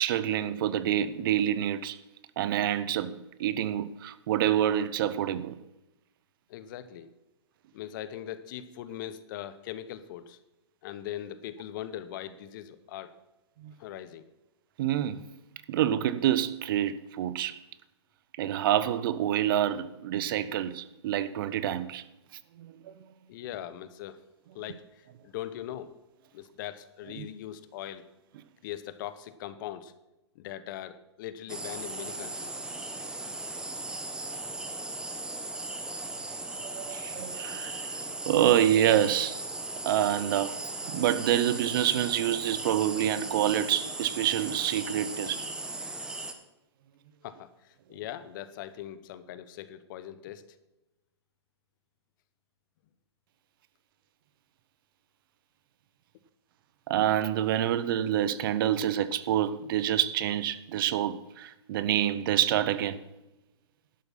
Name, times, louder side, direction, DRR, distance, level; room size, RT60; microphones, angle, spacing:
voice 1, 0.0-2.0 2.4-5.6 13.6-13.7 14.8-15.2 15.7-17.6 18.4-22.0 22.6-22.9 27.2-27.3 36.6-39.4 39.8-45.5 56.9-63.0, right 11 dB, 50° right, 0.7 m, -27 dB
voice 2, 6.5-7.1 7.7-10.4 10.8-13.1 13.8-14.2 23.3-24.2 24.5-24.8 25.2-25.9 26.3-28.0 28.6-29.9 30.3-32.6 47.2-50.4, left 11 dB, 45° left, 1.0 m, -40 dB
sound 1, 31.5-46.3, right 2 dB, 5° right, 1.0 m, -37 dB
11.5 x 7.9 x 5.8 m
hypercardioid pair, 125°, 15 cm